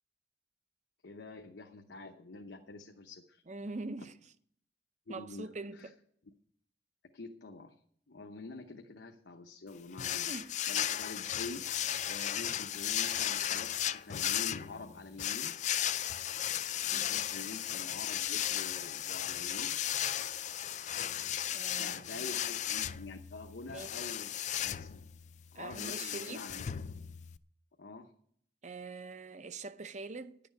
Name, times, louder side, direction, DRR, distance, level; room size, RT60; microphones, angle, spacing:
voice 1, 1.0-3.4 5.1-5.9 7.1-7.8 8.1-15.6 16.8-19.8 21.7-24.3 24.6-25.0 25.5-26.7 27.8-28.1, left 3 dB, 80° left, 0.9 m, -47 dB
voice 2, 3.5-4.2 5.1-5.9 10.3-10.5 16.9-17.3 21.5-22.2 23.7-23.9 25.5-26.5 28.6-30.4, right 3 dB, 40° right, 0.7 m, -43 dB
sound 1, 10.0-27.4, left 11 dB, 40° left, 0.4 m, -35 dB
10.5 x 6.9 x 9.1 m
head